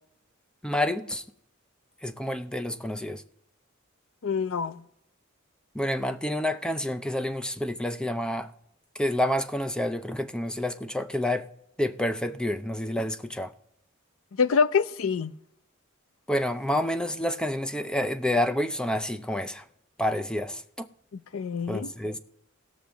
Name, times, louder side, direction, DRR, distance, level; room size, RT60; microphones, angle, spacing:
voice 1, 0.6-1.2 2.0-3.2 5.7-8.5 9.0-11.5 11.8-13.5 16.3-19.6 20.0-20.9 21.7-22.2, left 1 dB, 5° left, 0.5 m, -28 dB
voice 2, 4.2-4.8 14.3-15.3 21.3-21.9, left 5 dB, 70° left, 0.5 m, -25 dB
19.0 x 6.4 x 3.5 m
head